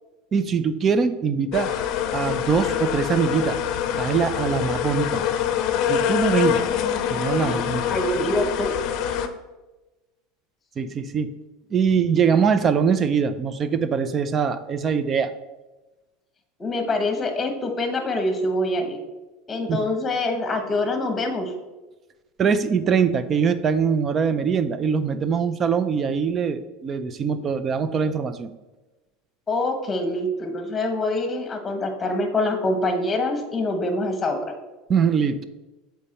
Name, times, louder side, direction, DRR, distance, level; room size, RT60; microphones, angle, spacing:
voice 1, 0.3-1.7 2.1-3.6 3.9-5.2 5.9-6.6 7.1-7.8 10.8-11.3 11.7-15.3 19.7-19.8 22.4-28.5 34.9-35.5, right 6 dB, 30° right, 12 dB, 0.5 m, -22 dB
sound 1, 1.5-9.3, left 9 dB, 50° left, 0.6 m, -25 dB
voice 2, 7.9-8.7 16.6-19.0 19.5-21.5 29.5-34.5, left 2 dB, 20° left, 5 dB, 1.2 m, -25 dB
7.3 x 4.5 x 4.2 m, 1.1 s
supercardioid pair, 125°, 0 cm